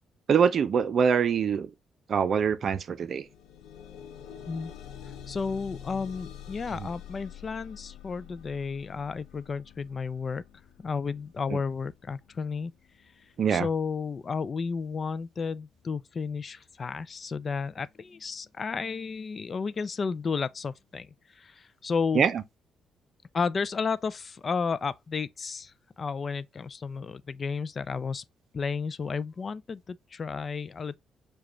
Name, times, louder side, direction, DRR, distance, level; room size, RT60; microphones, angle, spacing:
voice 1, 0.3-1.7 2.1-3.2 6.7-6.9 11.5-11.6 13.4-13.7 22.1-22.4, right 7 dB, 55° right, 0.5 m, -24 dB
sound 1, 2.3-2.5 2.8-13.9 14.6-14.7 15.2-15.3, left 9 dB, 85° left, 0.7 m, -47 dB
voice 2, 5.3-10.4 10.8-12.7 13.5-21.1 21.4-22.2 23.3-25.7 26.0-28.2 28.5-31.0, left 5 dB, 40° left, 0.3 m, -32 dB
4.9 x 2.3 x 3.0 m
cardioid pair, 90°, 0 cm